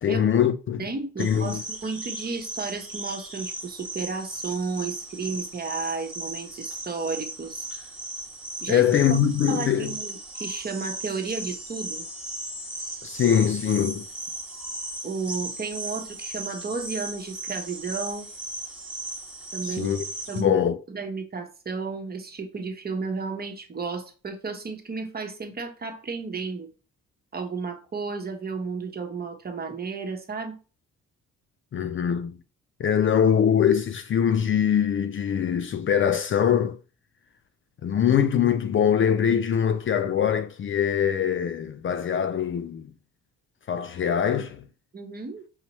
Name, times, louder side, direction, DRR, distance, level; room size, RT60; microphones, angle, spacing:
voice 1, 0.0-0.9 1.2-1.6 8.7-9.9 13.0-14.1 19.6-20.0 20.3-20.8 31.7-32.4 32.8-36.8 37.8-42.9 43.7-44.6, left 8 dB, 40° left, 0.5 m, -23 dB
voice 2, 0.8-7.8 8.6-8.8 9.1-9.2 9.5-12.0 15.0-18.3 19.5-20.6 20.9-26.7 27.3-30.6 44.9-45.4, right 4 dB, 30° right, 1.1 m, -33 dB
sound 1, 1.2-20.4, right 1 dB, 5° right, 1.3 m, -37 dB
5.6 x 2.8 x 3.0 m
cardioid pair, 90°, 30 cm